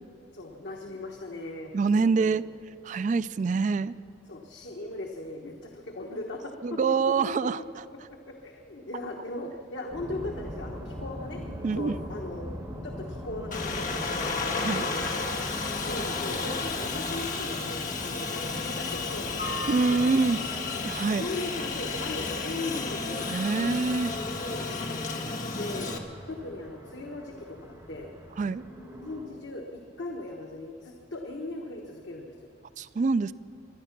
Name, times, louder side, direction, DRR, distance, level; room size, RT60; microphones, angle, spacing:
voice 1, 0.3-2.4 3.4-3.5 4.3-7.6 8.1-11.4 11.7-12.5 12.8-15.3 15.9-23.3 24.8-25.1 25.5-26.0 26.3-27.6 27.9-28.1 29.0-32.5, left 2 dB, 90° left, 1 dB, 1.2 m, -39 dB
voice 2, 1.7-2.4 2.8-3.9 6.6-7.8 11.6-12.0 14.6-14.9 19.7-20.4 20.8-21.3 23.3-24.1 28.4-28.6 32.8-33.3, right 4 dB, 45° right, 15 dB, 0.3 m, -25 dB
sound 1, 9.9-29.2, equal, 20° right, 3.4 m, -42 dB
Aircraft, 13.5-26.0, left 4 dB, 45° left, 1.6 m, -32 dB
24.5 x 10.0 x 5.9 m, 2.9 s
head